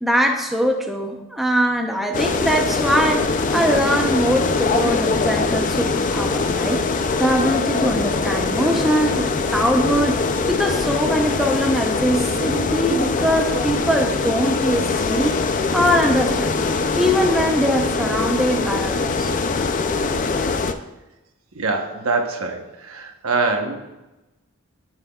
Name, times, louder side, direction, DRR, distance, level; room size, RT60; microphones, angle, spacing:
voice 1, 0.0-15.4 15.7-16.5 17.0-19.3, equal, ahead, 2 dB, 0.6 m, -22 dB
sound 1, 2.1-20.7, left 4 dB, 40° left, 0.4 m, -22 dB
voice 2, 21.5-23.8, right 3 dB, 80° right, 4 dB, 1.0 m, -24 dB
12.5 x 5.6 x 2.3 m, 1.0 s
head